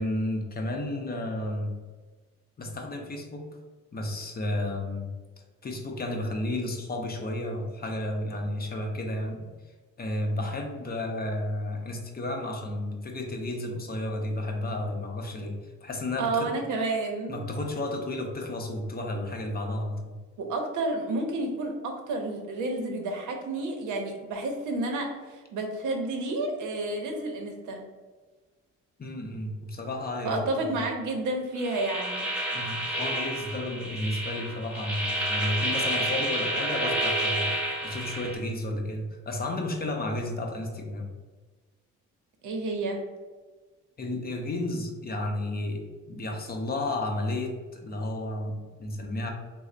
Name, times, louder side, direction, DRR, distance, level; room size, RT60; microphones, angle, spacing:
voice 1, 0.0-1.8 2.6-3.5 3.9-5.2 5.6-9.5 10.0-16.5 17.3-20.2 29.0-30.4 30.7-30.8 32.5-37.5 37.8-41.1 44.0-49.3, left 1 dB, 30° left, 2 dB, 0.6 m, -32 dB
voice 2, 16.2-17.4 20.4-27.8 30.2-32.3 42.4-43.0, right 2 dB, 80° right, 2 dB, 0.7 m, -30 dB
sound 1, 31.6-38.4, right 1 dB, 5° right, 0.8 m, -30 dB
3.1 x 2.0 x 3.7 m, 1.3 s
cardioid pair, 90°, 30 cm